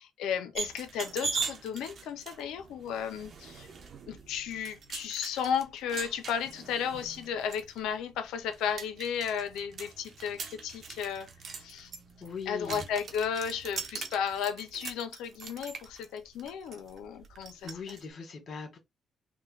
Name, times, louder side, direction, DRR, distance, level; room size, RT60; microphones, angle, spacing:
voice 1, 0.0-3.7 4.1-11.9 12.5-18.0, left 7 dB, 85° left, 0.6 m, -34 dB
sound 1, 0.5-18.0, right 5 dB, 60° right, 0.9 m, -42 dB
voice 2, 12.2-12.9 17.6-18.8, left 5 dB, 60° left, 1.7 m, -40 dB
3.8 x 2.2 x 3.9 m
cardioid pair, 70°, 0 cm